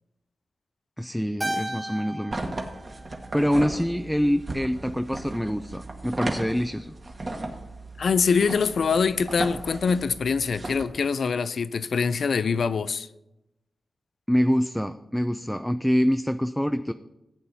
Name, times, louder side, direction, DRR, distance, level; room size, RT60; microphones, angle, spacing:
voice 1, 1.0-2.6 3.3-6.9 14.3-16.9, equal, 5° left, 9 dB, 0.4 m, -25 dB
Keyboard (musical), 1.4-3.9, right 1 dB, 20° right, 1.7 m, -35 dB
sound 1, 2.3-10.8, right 2 dB, 45° right, 1.6 m, -36 dB
voice 2, 8.0-13.1, left 5 dB, 80° left, 15 dB, 0.4 m, -24 dB
14.5 x 8.7 x 2.7 m, 0.92 s
cardioid pair, 65°, 0 cm